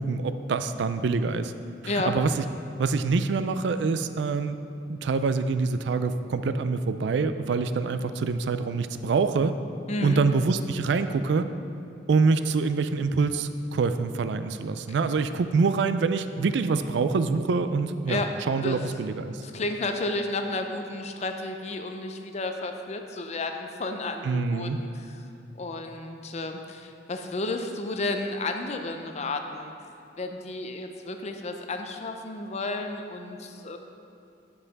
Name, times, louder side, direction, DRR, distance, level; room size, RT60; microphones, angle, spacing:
voice 1, 0.0-1.5 1.8-2.4 2.8-4.6 4.9-9.6 10.0-11.5 12.1-19.4 24.2-24.8, right 4 dB, 65° right, 11 dB, 0.3 m, -25 dB
voice 2, 1.9-2.2 9.9-10.2 18.1-18.3 18.6-18.8 19.4-25.2 25.6-29.7 30.2-33.8, left 2 dB, 35° left, 5 dB, 0.5 m, -32 dB
9.9 x 5.5 x 4.0 m, 2.7 s
head